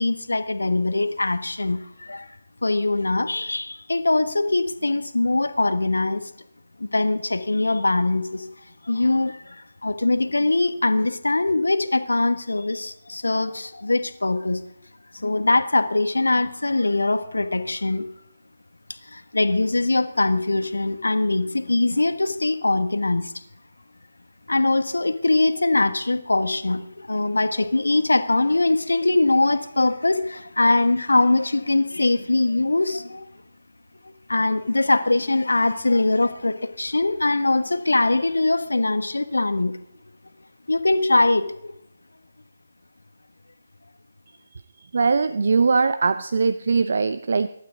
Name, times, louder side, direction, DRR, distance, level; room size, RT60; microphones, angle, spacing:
voice 1, 0.0-2.3 2.6-6.3 6.8-8.5 8.8-14.6 15.1-18.0 19.1-23.3 24.5-33.2 34.3-39.7 40.7-41.7, left 2 dB, 70° left, 10 dB, 1.3 m, -22 dB
voice 2, 44.9-47.5, right 4 dB, 50° right, 12 dB, 0.6 m, -21 dB
24.0 x 12.0 x 3.9 m, 0.75 s
figure-of-eight pair, 150°, 0 cm